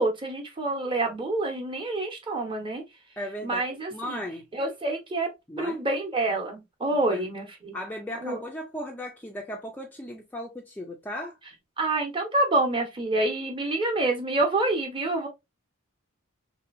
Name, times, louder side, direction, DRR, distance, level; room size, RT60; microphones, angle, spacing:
voice 1, 0.0-2.8 3.4-4.2 4.6-5.3 5.6-7.8 8.2-8.4 11.8-15.3, right 2 dB, 25° right, 0.7 m, -27 dB
voice 2, 3.2-4.4 5.5-5.8 7.1-7.3 7.7-11.4, equal, 10° left, 0.3 m, -36 dB
3.2 x 2.7 x 2.4 m
head